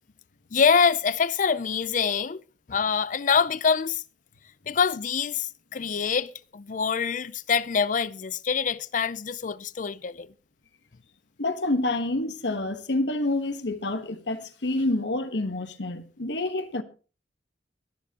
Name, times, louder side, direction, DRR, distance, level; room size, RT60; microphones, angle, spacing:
voice 1, 0.5-2.4 2.7-4.0 4.7-10.3, left 6 dB, 45° left, 0.5 m, -25 dB
voice 2, 11.4-16.8, left 2 dB, 80° left, 1.3 m, -28 dB
23.0 x 7.7 x 2.9 m
head